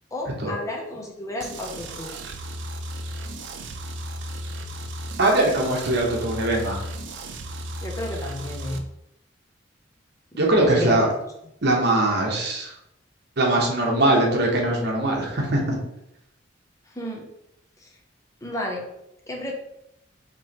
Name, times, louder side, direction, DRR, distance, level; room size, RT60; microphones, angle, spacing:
voice 1, 0.1-2.2 7.8-8.8 10.3-11.1 16.9-17.3 17.8-18.0 18.4-18.8 19.3-19.5, left 1 dB, 15° left, 0 dB, 0.6 m, -32 dB
sound 1, 1.4-8.8, right 1 dB, 85° right, 0.5 m, -35 dB
voice 2, 5.2-6.8 10.4-11.1 11.6-12.7 13.4-15.8, right 1 dB, 60° right, 0 dB, 1.0 m, -21 dB
4.7 x 3.0 x 2.9 m, 0.81 s
head